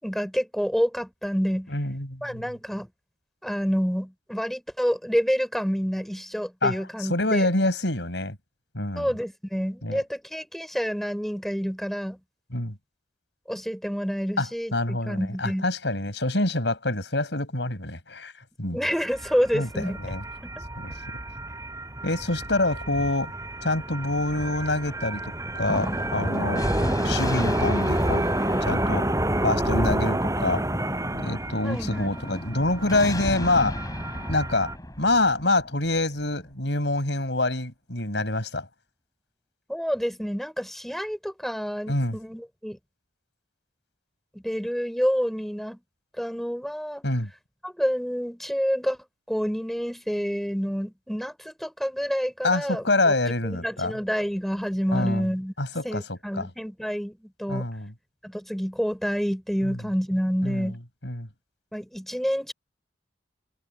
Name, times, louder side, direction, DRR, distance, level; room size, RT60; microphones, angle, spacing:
voice 1, 0.0-1.7 2.2-2.9 3.4-7.5 8.9-12.2 13.5-15.7 18.7-20.0 20.4-20.6 31.6-32.1 39.7-42.8 44.3-45.8 46.2-47.0 47.6-49.0 49.3-53.1 53.4-55.5 55.8-57.7 58.2-60.8 61.7-62.5, equal, ahead, 5.1 m, -28 dB
voice 2, 1.7-2.4 6.6-8.4 8.7-9.1 9.8-10.0 12.5-12.8 14.4-18.3 18.6-18.8 19.5-20.2 20.8-21.2 22.0-23.3 23.6-26.6 27.0-28.3 28.6-29.1 29.4-30.6 31.2-33.8 34.3-34.7 35.0-38.7 41.9-42.2 47.0-47.3 52.4-53.9 54.9-55.3 55.6-56.5 57.5-57.9 59.6-59.8 60.4-60.7 61.0-61.3, left 2 dB, 75° left, 6.6 m, -26 dB
sound 1, 18.9-34.8, right 1 dB, 20° right, 7.2 m, -29 dB
Thunder, 25.6-36.5, left 1 dB, 20° left, 4.2 m, -34 dB
head